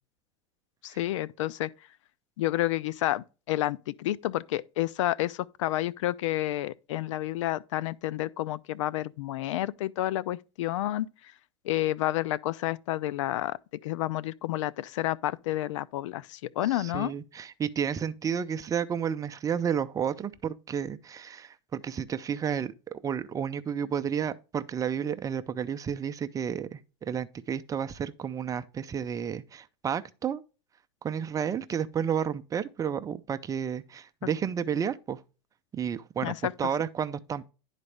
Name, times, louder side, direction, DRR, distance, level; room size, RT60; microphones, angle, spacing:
voice 1, 0.8-1.7 2.4-11.1 11.6-13.6 13.8-17.1 36.2-36.5, left 15 dB, 80° left, 0.5 m, -30 dB
voice 2, 16.7-30.4 31.0-35.2 35.7-37.5, right 8 dB, 20° right, 0.5 m, -31 dB
11.0 x 4.1 x 3.3 m
supercardioid pair, 120°, 16 cm